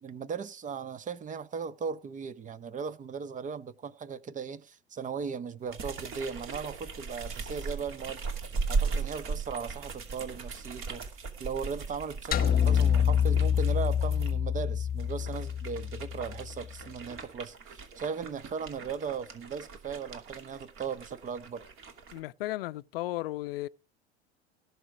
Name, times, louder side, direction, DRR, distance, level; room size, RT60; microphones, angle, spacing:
voice 1, 0.0-8.2 8.7-11.1 11.4-21.7, right 6 dB, 25° right, 0.8 m, -37 dB
sound 1, 5.7-14.3 14.9-22.2, right 4 dB, 40° right, 2.7 m, -38 dB
sound 2, 12.3-16.7, left 8 dB, 30° left, 1.2 m, -27 dB
voice 2, 22.1-23.7, left 17 dB, 65° left, 0.7 m, -35 dB
17.0 x 6.8 x 4.9 m
figure-of-eight pair, 80°, 32 cm